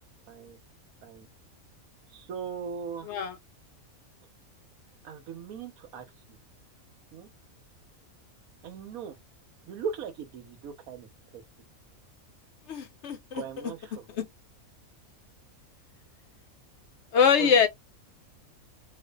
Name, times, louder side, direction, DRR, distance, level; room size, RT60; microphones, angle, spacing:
voice 1, 0.3-0.6 1.0-1.3 2.1-3.1 5.0-6.4 7.1-7.3 8.6-9.2 9.7-11.4 13.3-14.1 17.4-17.7, right 6 dB, 85° right, 1.2 m, -39 dB
voice 2, 12.7-13.4 14.2-14.3 17.1-17.7, left 7 dB, 65° left, 0.8 m, -23 dB
2.5 x 2.4 x 2.2 m
omnidirectional pair, 1.5 m